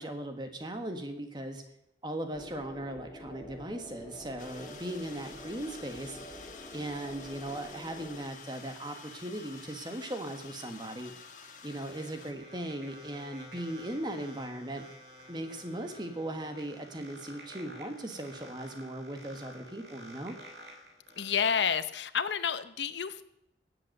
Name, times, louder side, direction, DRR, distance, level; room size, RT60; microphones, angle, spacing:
voice 1, 0.0-1.6 2.0-6.2 6.7-11.1 11.6-14.8 15.3-20.3, right 1 dB, 25° right, 6 dB, 1.4 m, -38 dB
sound 1, 2.3-8.2, equal, 10° left, 3.4 m, -48 dB
sound 2, 4.4-12.3, left 5 dB, 45° left, 1.6 m, -50 dB
sound 3, 11.1-21.5, right 1 dB, 70° right, 3.5 m, -51 dB
voice 2, 21.2-23.2, left 7 dB, 85° left, 13 dB, 0.8 m, -30 dB
16.5 x 8.2 x 6.6 m, 0.81 s
head